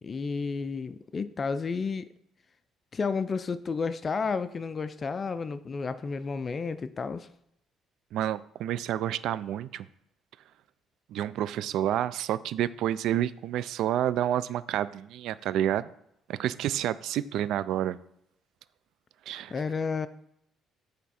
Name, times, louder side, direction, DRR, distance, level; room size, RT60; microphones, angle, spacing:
voice 1, 0.0-2.1 2.9-7.3 19.5-20.1, left 5 dB, 35° left, 13 dB, 0.4 m, -31 dB
voice 2, 8.1-9.9 11.1-15.9 16.3-18.0 19.3-19.5, right 11 dB, 75° right, 17 dB, 0.3 m, -29 dB
8.5 x 3.4 x 4.2 m, 0.75 s
cardioid pair, 95°, 0 cm